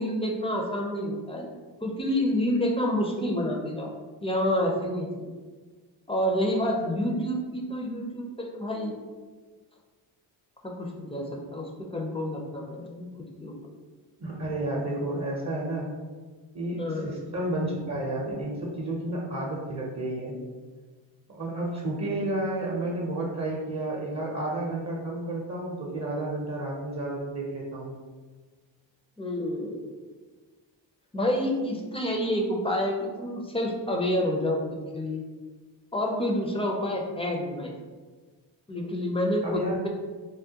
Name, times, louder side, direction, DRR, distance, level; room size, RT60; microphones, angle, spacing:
voice 1, 0.0-1.5 1.8-3.9 4.2-5.1 6.1-8.9 10.6-13.1 13.4-13.5 16.8-17.1 29.2-30.0 31.1-35.2 35.9-37.7 38.7-39.9, left 1 dB, 15° left, 0 dB, 0.4 m, -28 dB
voice 2, 14.2-15.9 16.5-20.4 21.3-27.9 39.4-39.9, right 1 dB, 35° right, -3 dB, 0.6 m, -31 dB
3.4 x 2.1 x 2.7 m, 1.4 s
cardioid pair, 90°, 45 cm